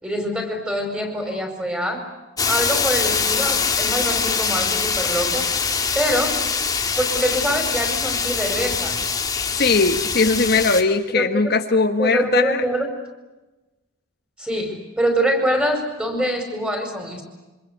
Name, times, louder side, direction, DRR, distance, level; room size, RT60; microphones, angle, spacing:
voice 1, 0.0-2.1 2.4-5.5 5.9-6.4 7.0-9.0 11.1-11.3 12.0-12.9 14.4-17.2, equal, 5° right, 5 dB, 5.1 m, -24 dB
sound 1, 2.4-10.8, left 5 dB, 20° left, 1.9 m, -23 dB
voice 2, 9.6-12.6, left 4 dB, 50° left, 6 dB, 1.4 m, -19 dB
26.5 x 26.0 x 8.2 m, 1.1 s
head